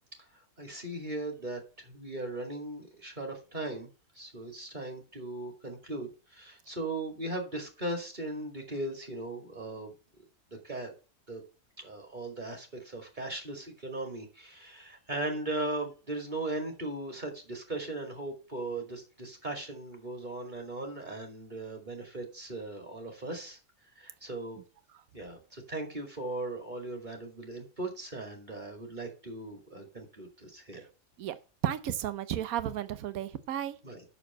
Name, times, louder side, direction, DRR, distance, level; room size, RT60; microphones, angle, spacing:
voice 1, 0.6-3.9 4.1-9.9 10.6-10.9 11.3-11.4 11.8-23.6 24.0-24.6 25.1-30.9 33.8-34.0, right 2 dB, 30° right, 2.7 m, -38 dB
voice 2, 31.6-33.8, right 11 dB, 80° right, 1.2 m, -33 dB
6.9 x 6.7 x 7.4 m
omnidirectional pair, 1.5 m